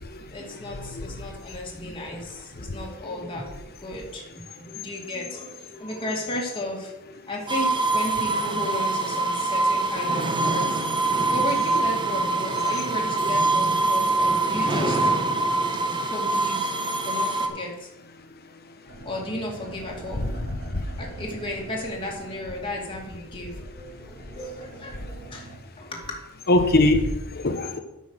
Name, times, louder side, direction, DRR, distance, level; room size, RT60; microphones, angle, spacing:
voice 1, 0.2-10.8 11.3-15.1 16.0-16.7 17.0-17.9 18.9-20.2 21.0-26.2, left 1 dB, 25° left, -2 dB, 2.2 m, -34 dB
voice 2, 0.7-1.0 2.7-2.8 20.2-20.3 20.7-20.9 26.5-27.8, left 2 dB, 45° left, 7 dB, 1.0 m, -22 dB
sound 1, 7.5-17.5, right 2 dB, 20° right, 0.9 m, -24 dB
sound 2, 18.9-25.6, right 2 dB, 70° right, 3.2 m, -44 dB
9.6 x 5.6 x 6.3 m, 0.93 s
head